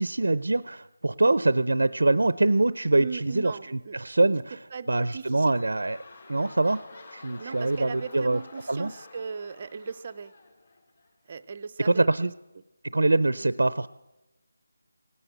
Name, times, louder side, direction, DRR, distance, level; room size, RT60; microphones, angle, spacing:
voice 1, 0.0-4.6 4.9-6.0 6.3-6.8 7.1-8.4 8.7-8.9 11.8-12.3 12.8-13.9, right 2 dB, 90° right, 16 dB, 0.6 m, -24 dB
voice 2, 3.0-4.0 4.7-5.5 7.4-10.3 11.3-12.3 13.4-13.5, right 5 dB, 20° right, 11 dB, 0.5 m, -38 dB
sound 1, 5.2-11.4 12.1-12.2, left 3 dB, 30° left, 2.3 m, -50 dB
18.0 x 9.9 x 8.1 m, 1.0 s
figure-of-eight pair, 180°, 0 cm